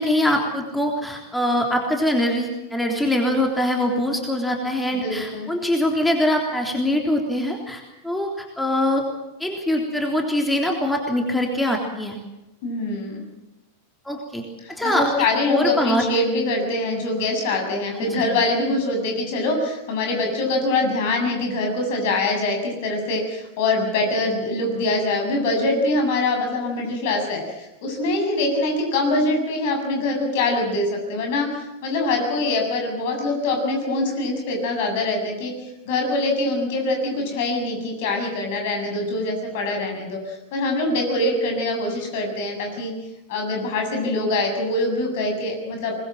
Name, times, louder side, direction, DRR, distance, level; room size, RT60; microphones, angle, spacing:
voice 1, 0.0-9.0 9.4-12.2 14.0-14.4 14.7-15.1 15.5-16.0 18.0-18.3, left 1 dB, 5° left, 1 dB, 3.5 m, -23 dB
voice 2, 4.9-5.5 12.6-13.2 14.6-31.6 31.8-35.5 35.9-42.9 43.3-45.9, left 2 dB, 50° left, 3 dB, 7.4 m, -24 dB
24.0 x 21.0 x 7.7 m, 0.97 s
figure-of-eight pair, 90°, 0 cm